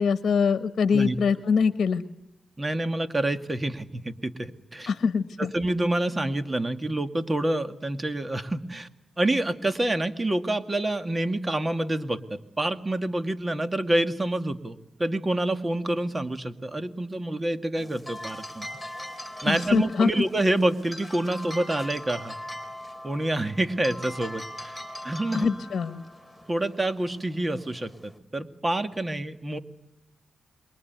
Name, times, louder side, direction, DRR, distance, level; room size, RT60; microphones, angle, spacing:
voice 1, 0.0-2.0 4.9-5.5 19.4-20.2 25.3-26.0, left 5 dB, 65° left, 11 dB, 1.2 m, -24 dB
voice 2, 2.6-4.9 5.4-8.9 9.2-18.7 19.4-22.4 23.0-24.8 25.0-25.5 26.5-29.6, right 1 dB, 30° right, 9 dB, 2.1 m, -27 dB
sound 1, 17.8-28.2, left 1 dB, 10° right, 3.9 m, -41 dB
27.5 x 22.5 x 9.4 m, 0.86 s
cardioid pair, 50°, 0 cm